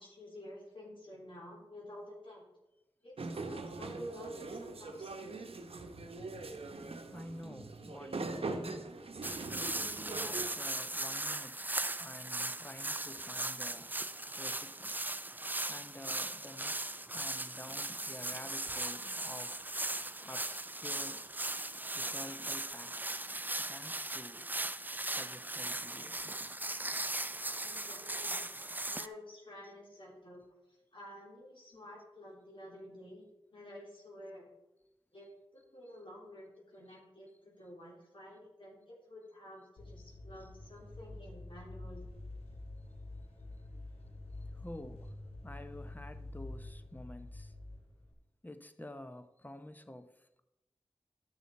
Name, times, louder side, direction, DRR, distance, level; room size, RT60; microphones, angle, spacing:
voice 1, 0.0-2.4 3.0-5.4 27.6-28.5 28.9-30.4 30.7-33.3 33.5-34.5 35.1-42.1, left 1 dB, 55° left, -4 dB, 3.5 m, -51 dB
sound 1, 3.2-10.5, right 3 dB, 70° right, 0.9 m, -42 dB
voice 2, 6.8-8.8 9.6-11.6 12.0-13.9 14.4-14.9 15.7-19.6 20.2-21.2 21.9-23.2 23.6-24.5 25.1-26.3 43.7-43.9 44.6-45.1 45.4-47.5 48.4-50.1, left 1 dB, 15° left, 10 dB, 0.8 m, -50 dB
sound 2, 9.2-29.1, right 2 dB, 20° right, 0.5 m, -38 dB
sound 3, 39.8-48.1, left 2 dB, 85° left, 2.9 m, -47 dB
11.5 x 6.3 x 4.2 m, 0.96 s
cardioid pair, 40°, 10 cm